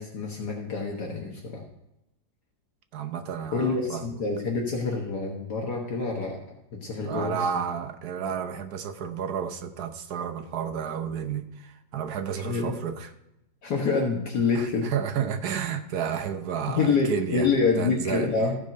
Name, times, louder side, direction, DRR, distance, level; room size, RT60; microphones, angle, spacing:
voice 1, 0.0-1.6 3.5-6.4 6.7-7.5 12.4-12.8 13.6-14.9 16.7-18.6, left 4 dB, 60° left, 0 dB, 1.7 m, -27 dB
voice 2, 2.9-4.0 7.0-13.1 14.5-17.5 17.8-18.3, right 8 dB, 60° right, 6 dB, 1.2 m, -31 dB
14.5 x 5.2 x 5.3 m, 0.90 s
omnidirectional pair, 2.1 m